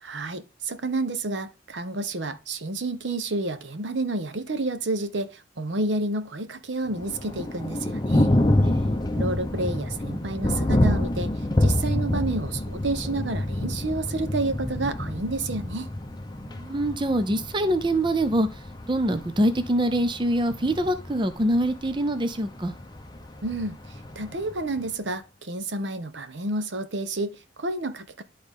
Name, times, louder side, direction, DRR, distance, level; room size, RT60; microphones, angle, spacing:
voice 1, 0.0-8.3 9.1-15.9 23.4-28.2, right 2 dB, 75° right, 0.9 m, -30 dB
Thunder, 6.9-24.9, left 1 dB, 25° left, 0.7 m, -27 dB
voice 2, 8.6-9.0 16.5-18.6 18.9-22.7, right 1 dB, 25° right, 0.6 m, -24 dB
11.5 x 3.9 x 3.6 m
head